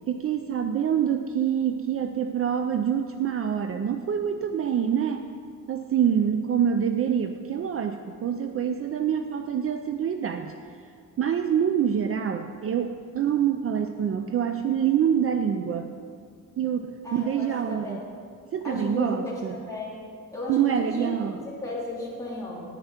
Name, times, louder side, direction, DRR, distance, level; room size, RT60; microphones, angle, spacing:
voice 1, 0.1-5.3 5.7-10.5 11.2-15.9 16.6-18.0 18.5-19.5 20.5-21.4, right 8 dB, 45° right, 7 dB, 0.4 m, -26 dB
voice 2, 17.0-18.0 18.6-20.0 20.3-21.1 21.6-22.6, left 1 dB, 10° left, -7 dB, 2.8 m, -34 dB
10.5 x 9.2 x 5.7 m, 2.2 s
wide cardioid pair, 175°, 32 cm